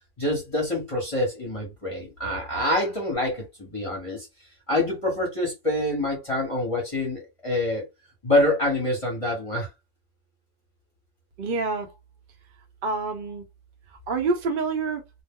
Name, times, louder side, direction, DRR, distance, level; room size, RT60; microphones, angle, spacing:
voice 1, 0.2-4.3 4.7-7.9 8.2-9.7, left 1 dB, 25° left, 1.0 m, -26 dB
voice 2, 11.4-11.9 12.8-13.4 14.1-15.0, right 4 dB, 50° right, 0.8 m, -27 dB
2.4 x 2.1 x 3.5 m
omnidirectional pair, 1.4 m